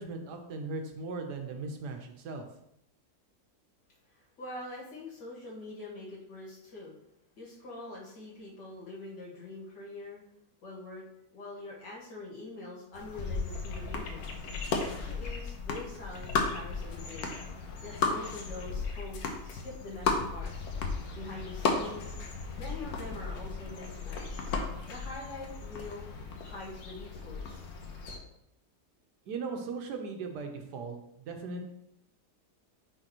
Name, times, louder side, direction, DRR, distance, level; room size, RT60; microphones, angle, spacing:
voice 1, 0.0-2.4 29.3-31.7, right 4 dB, 70° right, 4 dB, 1.4 m, -38 dB
voice 2, 4.1-6.9 7.4-10.2 10.6-11.0 11.3-14.2 14.8-17.4 17.8-20.7 21.1-22.1 22.6-24.5 24.9-26.1 26.4-27.6, left 2 dB, 90° left, -5 dB, 2.6 m, -44 dB
sound 1, 12.9-28.2, left 4 dB, 65° left, 1.3 m, -35 dB
9.1 x 4.0 x 3.0 m, 0.78 s
omnidirectional pair, 1.9 m